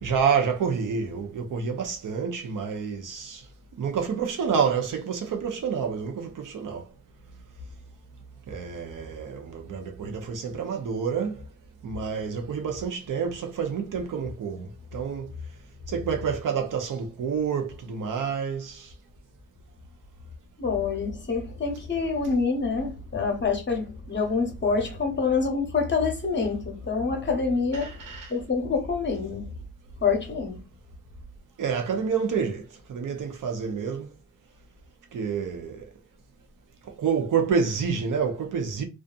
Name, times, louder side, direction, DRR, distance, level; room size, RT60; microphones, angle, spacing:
voice 1, 0.0-3.4 3.8-6.8 8.5-11.4 11.8-15.3 15.9-18.9 27.8-28.3 31.6-34.1 35.1-35.8 37.0-38.8, right 6 dB, 75° right, 0.6 m, -28 dB
voice 2, 20.6-28.0 28.3-29.5 30.0-30.6, left 4 dB, 35° left, 0.8 m, -26 dB
2.6 x 2.4 x 2.3 m
wide cardioid pair, 100°, 32 cm